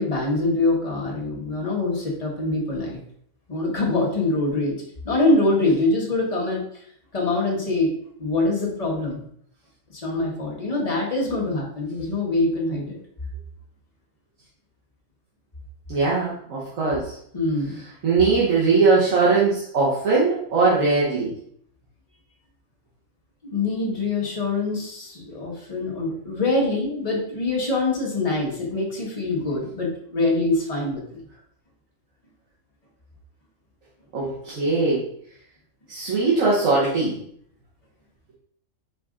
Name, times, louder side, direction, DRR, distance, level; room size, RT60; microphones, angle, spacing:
voice 1, 0.0-3.0 3.5-4.7 5.0-6.8 7.1-7.9 8.2-9.2 9.9-12.9 17.3-17.8 23.5-31.2, left 2 dB, 30° left, -3 dB, 1.2 m, -24 dB
voice 2, 15.9-17.1 18.0-21.3 34.1-35.0 35.9-37.2, right 4 dB, 75° right, -7 dB, 1.4 m, -20 dB
5.1 x 2.6 x 3.6 m, 0.65 s
omnidirectional pair, 1.4 m